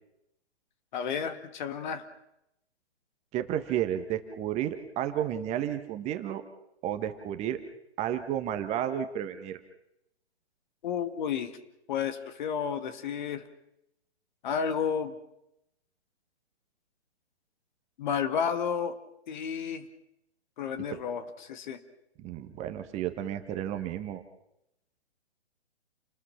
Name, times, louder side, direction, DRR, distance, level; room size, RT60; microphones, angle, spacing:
voice 1, 0.9-2.1 10.8-11.5 11.9-13.4 14.4-15.2 18.0-18.9 19.3-19.9 20.6-21.8, left 7 dB, 45° left, 10 dB, 2.1 m, -31 dB
voice 2, 3.3-6.4 6.8-7.6 8.0-9.6 20.9-21.0 22.2-24.2, right 10 dB, 20° right, 8 dB, 1.4 m, -32 dB
29.0 x 20.0 x 5.9 m, 0.82 s
figure-of-eight pair, 135°, 33 cm